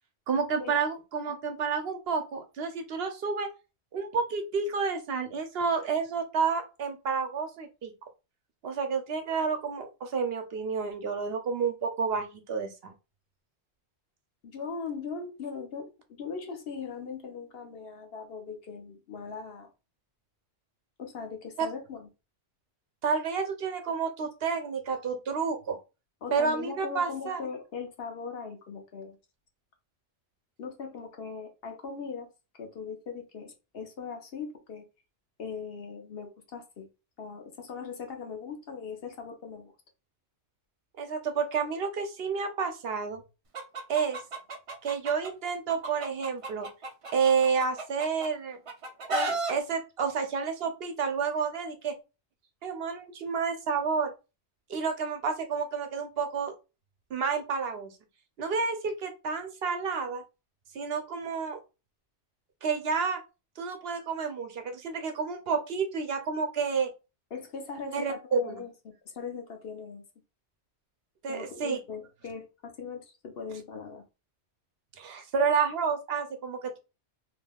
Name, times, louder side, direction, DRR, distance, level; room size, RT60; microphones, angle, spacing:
voice 1, 0.3-3.5 3.9-7.9 8.6-12.9 21.6-21.7 23.0-25.8 26.3-27.4 41.0-43.2 43.9-44.2 44.8-46.7 47.1-48.6 49.1-52.0 52.6-54.1 54.7-56.5 57.1-57.9 58.4-60.2 60.7-61.6 62.6-63.2 63.6-66.9 67.9-68.6 71.2-71.8 75.0-76.8, right 5 dB, 65° right, 0.9 m, -30 dB
voice 2, 14.4-19.7 21.0-22.1 26.2-29.2 30.6-32.3 32.6-34.8 35.4-36.9 37.2-39.7 67.3-68.7 69.1-70.0 71.3-74.0, left 5 dB, 65° left, 1.0 m, -39 dB
Chicken rooster, 43.5-45.3 45.7-48.3 48.7-49.5, right 2 dB, 40° right, 0.5 m, -33 dB
3.6 x 2.9 x 2.3 m
omnidirectional pair, 1.1 m